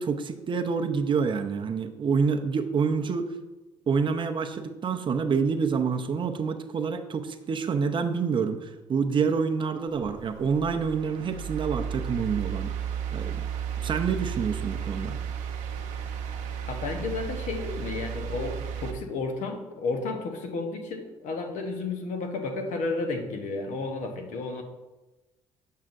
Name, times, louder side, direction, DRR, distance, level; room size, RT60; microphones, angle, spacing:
voice 1, 0.0-3.3 3.9-12.7 13.1-13.5 13.8-15.2, right 5 dB, 40° right, 6 dB, 0.6 m, -27 dB
sound 1, 9.9-18.9, right 8 dB, 75° right, 0.8 m, -34 dB
voice 2, 16.7-24.6, left 3 dB, 70° left, 5 dB, 1.0 m, -32 dB
7.4 x 5.6 x 2.6 m, 1.1 s
supercardioid pair, 85°, 13 cm